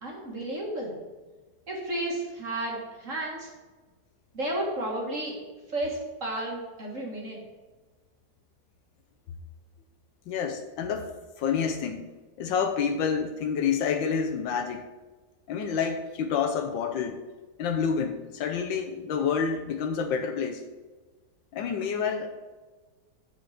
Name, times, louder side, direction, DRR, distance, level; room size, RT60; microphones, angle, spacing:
voice 1, 0.0-0.9 1.7-3.5 4.3-5.3 5.7-7.4, right 1 dB, 45° right, -2 dB, 2.0 m, -32 dB
voice 2, 10.3-11.1 11.4-12.1 12.4-14.9 15.5-17.2 17.6-20.6 21.5-22.4, left 6 dB, 90° left, 4 dB, 1.5 m, -28 dB
7.5 x 7.1 x 5.0 m, 1.3 s
omnidirectional pair, 2.0 m